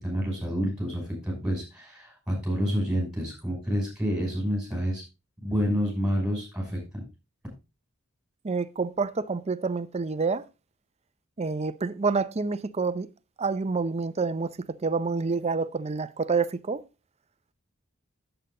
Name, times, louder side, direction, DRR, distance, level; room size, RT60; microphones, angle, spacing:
voice 1, 0.0-5.0 5.4-7.0, equal, 5° right, 5.6 m, -28 dB
voice 2, 8.4-10.4 11.4-13.1 13.4-14.5 14.8-16.8, right 4 dB, 30° right, 0.5 m, -28 dB
8.9 x 7.9 x 3.8 m
head